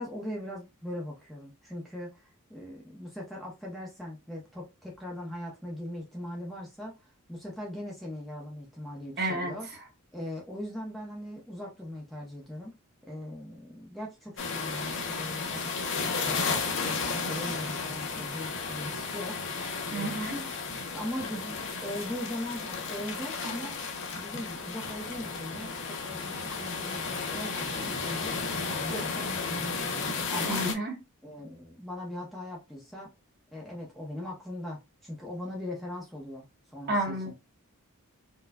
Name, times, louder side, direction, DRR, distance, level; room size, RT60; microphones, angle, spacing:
voice 1, 0.0-9.7 10.1-12.7 13.1-19.4 19.9-20.5 20.9-23.8 24.1-28.4 28.7-30.0 30.3-30.7 31.2-33.1 33.5-37.3, left 1 dB, ahead, 0.7 m, -40 dB
voice 2, 9.2-9.6 19.9-20.5 30.5-31.0 36.9-37.3, right 1 dB, 45° right, 1.2 m, -31 dB
sound 1, 14.4-30.7, left 4 dB, 55° left, 0.7 m, -33 dB
4.5 x 2.3 x 2.2 m
head